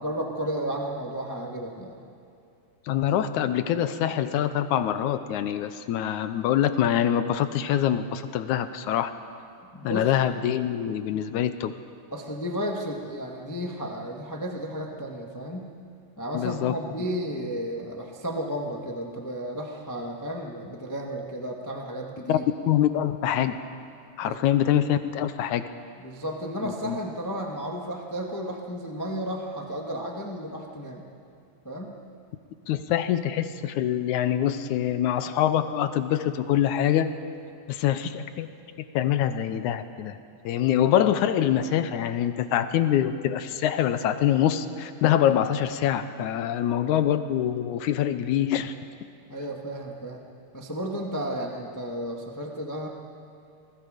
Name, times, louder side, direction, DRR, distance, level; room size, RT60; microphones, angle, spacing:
voice 1, 0.0-1.9 9.7-10.1 11.1-11.2 12.1-15.7 16.2-22.4 24.2-24.4 26.0-31.0 31.6-31.9 46.9-47.0 49.3-50.2 50.5-52.9, equal, 25° left, 1 dB, 0.3 m, -33 dB
voice 2, 2.9-9.1 9.8-11.7 16.3-16.7 22.3-22.4 22.7-23.6 24.2-25.6 26.6-27.0 32.7-37.1 37.7-38.5 38.9-40.2 40.4-48.7, left 10 dB, 75° left, 10 dB, 2.0 m, -24 dB
28.0 x 21.0 x 5.1 m, 2.6 s
omnidirectional pair, 3.7 m